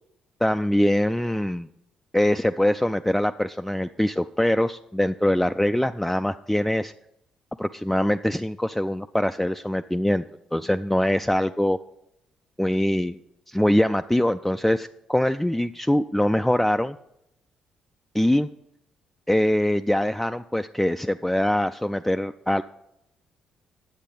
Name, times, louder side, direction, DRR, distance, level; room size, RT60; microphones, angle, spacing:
voice 1, 0.4-1.7 2.1-6.9 7.6-10.2 10.5-11.8 12.6-13.2 13.5-17.0 18.1-18.5 19.3-22.6, left 1 dB, 5° left, 8 dB, 0.3 m, -23 dB
10.0 x 8.1 x 5.4 m, 0.82 s
figure-of-eight pair, 45°, 3 cm